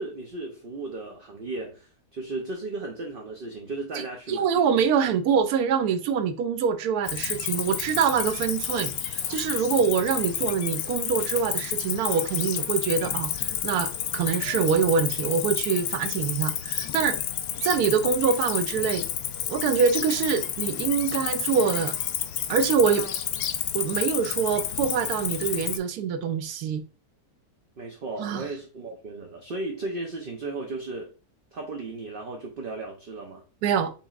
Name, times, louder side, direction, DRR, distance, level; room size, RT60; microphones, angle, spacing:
voice 1, 0.0-4.5 27.8-31.1 31.5-33.4, right 2 dB, 50° right, 0.7 m, -35 dB
voice 2, 4.3-17.2 17.6-19.1 19.5-21.9 22.5-23.1 23.7-26.8 28.2-28.5 33.6-33.9, right 6 dB, 75° right, 1.1 m, -25 dB
Cricket, 7.1-25.8, left 10 dB, 70° left, 1.0 m, -30 dB
6.8 x 3.0 x 2.4 m
omnidirectional pair, 1.7 m